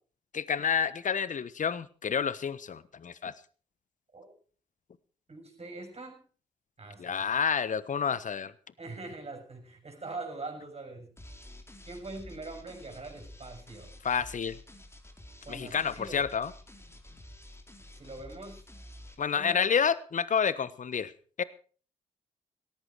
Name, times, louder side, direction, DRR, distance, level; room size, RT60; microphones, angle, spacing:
voice 1, 0.3-3.3 7.0-8.5 14.0-14.6 15.5-16.5 19.2-21.1 21.4-21.5, left 6 dB, 45° left, 18 dB, 1.2 m, -29 dB
voice 2, 5.3-6.2 6.8-7.3 8.8-11.1 11.9-13.9 15.4-16.2 17.9-18.6 19.3-19.7, right 3 dB, 35° right, 3 dB, 6.8 m, -43 dB
sound 1, 11.2-19.2, left 1 dB, 15° left, 4.1 m, -50 dB
17.5 x 14.0 x 4.7 m, 0.41 s
hypercardioid pair, 40°, 18 cm